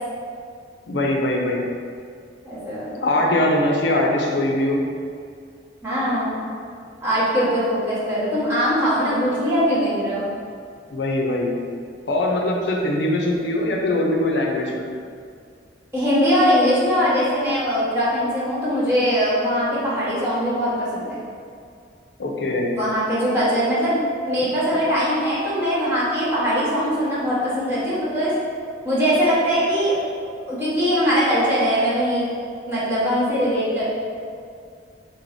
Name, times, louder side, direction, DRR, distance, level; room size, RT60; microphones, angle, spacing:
voice 1, 0.9-1.6 3.0-4.8 10.9-11.6 12.1-14.9 22.2-22.7, left 1 dB, 65° left, 0 dB, 0.6 m, -21 dB
voice 2, 2.4-3.0 5.8-6.4 7.0-10.2 15.9-21.2 22.8-28.3 28.8-30.0 30.5-32.3 32.7-33.8, equal, 15° right, -11 dB, 1.4 m, -21 dB
4.6 x 3.8 x 2.6 m, 2.2 s
head